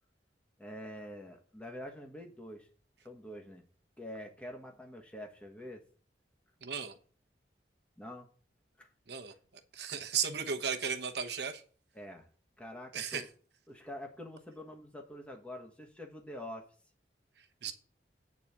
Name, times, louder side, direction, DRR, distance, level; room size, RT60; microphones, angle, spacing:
voice 1, 0.6-2.7 3.0-3.6 4.0-5.8 8.0-8.3 8.8-8.9 11.9-12.3 12.6-13.3 13.7-16.7, left 1 dB, 5° left, 2 dB, 1.3 m, -46 dB
voice 2, 6.6-6.9 9.1-9.3 9.7-11.6 12.9-13.2 17.6-17.7, right 7 dB, 65° right, 6 dB, 1.0 m, -35 dB
8.7 x 4.1 x 7.2 m, 0.43 s
head